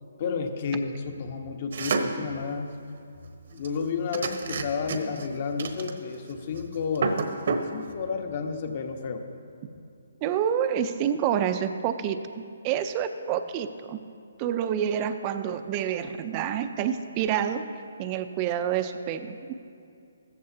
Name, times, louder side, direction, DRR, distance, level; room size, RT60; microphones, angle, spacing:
voice 1, 0.2-2.7 3.5-7.2 7.7-9.2, left 5 dB, 45° left, 5 dB, 1.2 m, -31 dB
sound 1, 1.7-2.2 3.6-3.8 4.1-5.3 5.6-6.3 6.6-6.7 6.9-7.7, right 4 dB, 60° right, 1.1 m, -28 dB
voice 2, 10.2-12.2 12.6-14.0 14.4-17.6 18.0-19.5, right 9 dB, 25° right, 10 dB, 0.6 m, -28 dB
15.5 x 14.0 x 2.8 m, 2.5 s
hypercardioid pair, 155°, 0 cm